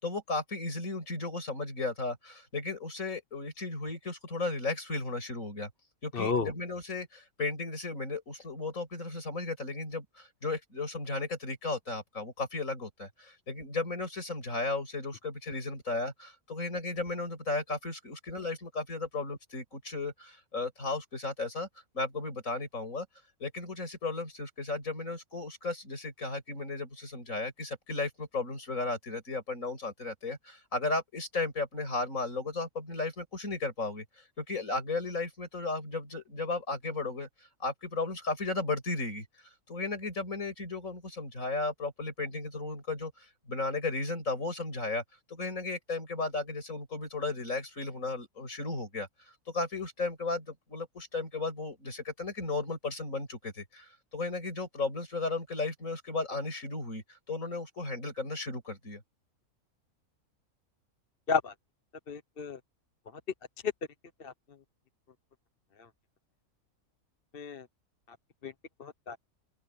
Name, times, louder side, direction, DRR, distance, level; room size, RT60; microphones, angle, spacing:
voice 1, 0.0-5.7 6.0-21.7 21.9-23.1 23.4-34.0 34.4-37.3 37.6-39.3 39.7-43.1 43.5-45.0 45.3-49.1 49.5-59.0, left 3 dB, 60° left, 6.7 m, -35 dB
voice 2, 6.1-6.5 61.3-61.5 62.1-62.6 64.2-64.3 67.3-67.6 68.4-68.5 68.8-69.2, left 5 dB, 40° left, 1.2 m, -31 dB
open air
omnidirectional pair, 1.6 m